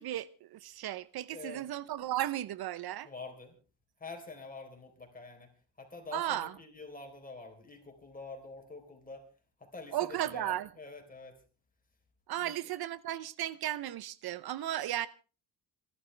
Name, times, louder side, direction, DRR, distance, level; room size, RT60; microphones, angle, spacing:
voice 1, 0.0-3.1 6.1-6.5 9.9-10.7 12.3-15.1, right 13 dB, 70° right, 0.8 m, -35 dB
voice 2, 1.3-1.6 3.0-3.5 4.0-5.5 5.8-9.3 9.6-11.4 12.4-12.5, left 3 dB, 20° left, 3.9 m, -46 dB
26.5 x 11.5 x 3.3 m
cardioid pair, 120°, 40 cm